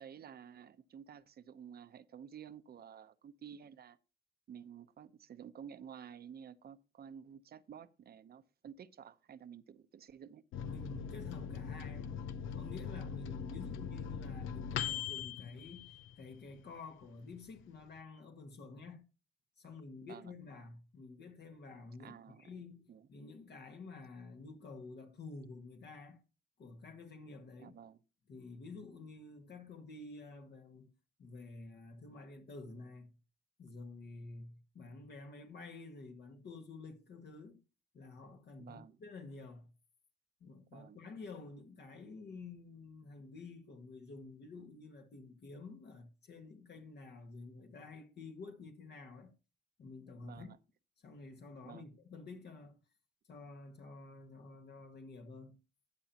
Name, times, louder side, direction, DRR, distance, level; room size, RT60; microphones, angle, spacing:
voice 1, 0.0-4.0 4.5-10.4 20.0-20.3 22.0-22.5 22.9-23.1 27.6-28.0 38.6-39.0 40.7-41.0 50.2-50.6 51.6-51.9, right 8 dB, 50° right, 0.8 m, -52 dB
Microwave oven, 10.5-16.6 17.0-17.1 17.4-18.0, left 8 dB, 85° left, 0.7 m, -41 dB
voice 2, 10.6-12.2 12.5-19.1 19.6-26.2 26.6-27.8 28.3-30.9 31.2-33.1 33.6-37.6 37.9-39.7 40.4-49.3 49.8-50.5 51.0-52.8 53.3-55.6, left 3 dB, 55° left, 1.7 m, -50 dB
12.5 x 8.9 x 2.9 m
cardioid pair, 90°, 20 cm